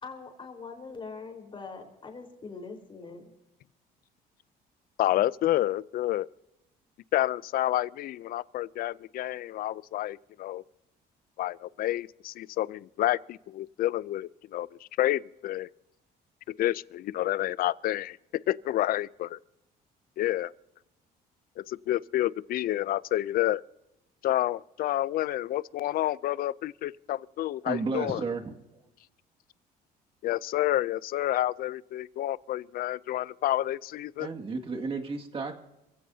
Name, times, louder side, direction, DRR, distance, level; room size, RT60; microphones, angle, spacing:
voice 1, 0.0-3.3, left 4 dB, 30° left, 4.3 m, -42 dB
voice 2, 5.0-6.3 7.1-10.6 11.4-14.7 15.0-15.7 16.6-18.2 18.5-19.4 20.2-20.5 21.6-23.6 24.2-28.2 30.2-34.3, left 14 dB, 60° left, 0.5 m, -29 dB
voice 3, 27.7-28.8 34.2-35.6, right 4 dB, 35° right, 2.0 m, -33 dB
28.0 x 16.0 x 2.8 m
cardioid pair, 110°, 17 cm